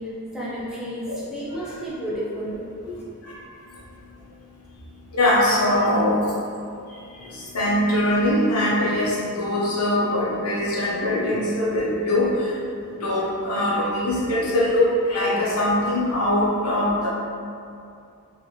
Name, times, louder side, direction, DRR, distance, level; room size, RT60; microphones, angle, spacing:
voice 1, 0.0-2.6, equal, 5° right, -9 dB, 0.5 m, -31 dB
voice 2, 1.1-1.7 2.9-3.0 3.2-3.4 5.1-6.2 7.1-12.6 12.9-17.1, left 1 dB, 75° left, -6 dB, 0.8 m, -22 dB
2.5 x 2.5 x 3.0 m, 2.5 s
head